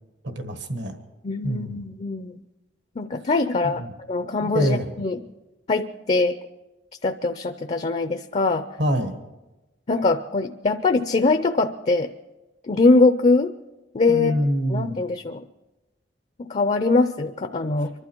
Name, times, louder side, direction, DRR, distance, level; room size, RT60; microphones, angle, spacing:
voice 1, 0.2-0.9 1.4-1.8 3.6-3.9 4.4-4.9 8.8-9.2 14.1-14.9, equal, 70° right, 6 dB, 1.5 m, -25 dB
voice 2, 1.2-2.4 3.0-5.2 5.7-6.4 7.0-8.6 9.9-12.1 12.7-13.5 13.9-14.4 14.7-15.4 16.4-17.9, left 3 dB, 40° left, 8 dB, 0.5 m, -22 dB
25.0 x 12.0 x 4.5 m, 1.1 s
head